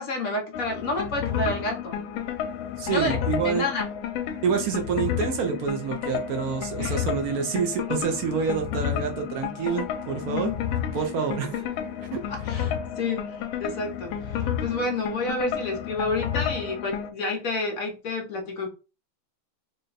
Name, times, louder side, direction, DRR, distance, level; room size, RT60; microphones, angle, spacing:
voice 1, 0.0-2.0 2.9-3.9 6.8-7.2 10.3-10.6 10.9-11.0 12.3-13.3 13.6-18.7, left 2 dB, 60° left, 0.9 m, -30 dB
sound 1, 0.5-17.1, left 9 dB, 80° left, 1.3 m, -31 dB
voice 2, 2.8-3.7 4.4-10.5 10.9-11.6 12.1-12.2, right 6 dB, 70° right, 0.8 m, -27 dB
3.8 x 2.2 x 3.9 m
omnidirectional pair, 2.2 m